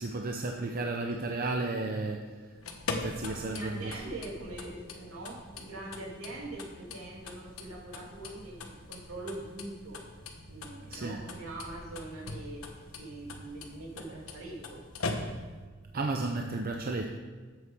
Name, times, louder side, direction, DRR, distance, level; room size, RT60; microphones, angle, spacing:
voice 1, 0.0-2.6 3.0-3.9 10.9-11.2 15.9-17.2, right 2 dB, 45° right, 3 dB, 0.7 m, -33 dB
sound 1, 2.5-15.7, left 3 dB, 80° left, 1.2 m, -42 dB
voice 2, 3.2-10.0 10.5-12.6 13.0-14.8, right 2 dB, 70° right, -3 dB, 2.7 m, -42 dB
8.0 x 7.9 x 6.7 m, 1.5 s
head